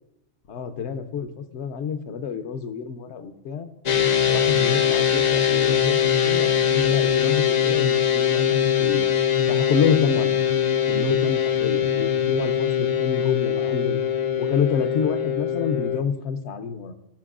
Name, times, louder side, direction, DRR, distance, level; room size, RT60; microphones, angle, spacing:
voice 1, 0.5-3.7 4.3-9.1 9.5-10.4 10.8-14.0 14.4-16.9, left 6 dB, 70° left, 9 dB, 0.9 m, -28 dB
sound 1, 3.9-16.0, left 8 dB, 55° left, 0.5 m, -22 dB
18.0 x 6.0 x 2.4 m, 0.95 s
omnidirectional pair, 1.2 m